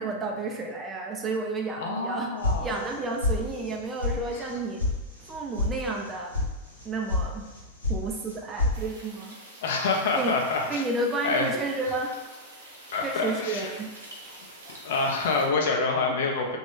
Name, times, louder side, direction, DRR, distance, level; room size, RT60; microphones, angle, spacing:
voice 1, 0.0-4.8 5.2-6.4 6.8-7.5 7.9-9.4 10.2-10.3 10.7-12.2 13.0-13.9 16.1-16.2, right 2 dB, 20° right, 0 dB, 0.4 m, -31 dB
voice 2, 1.8-2.7 9.6-10.8 11.2-11.5 12.9-13.7 14.8-16.6, left 3 dB, 60° left, 1 dB, 0.5 m, -26 dB
sound 1, 2.4-3.0 3.2-3.7 4.0-4.1 4.5-4.9 5.2-5.7 6.0-6.5 6.8-7.2 7.5-8.0 8.3-8.8, left 2 dB, 85° left, 0.8 m, -27 dB
sound 2, 8.7-15.5, right 1 dB, 70° right, 0.7 m, -47 dB
3.0 x 2.2 x 2.9 m, 1.1 s
figure-of-eight pair, 90°, 0 cm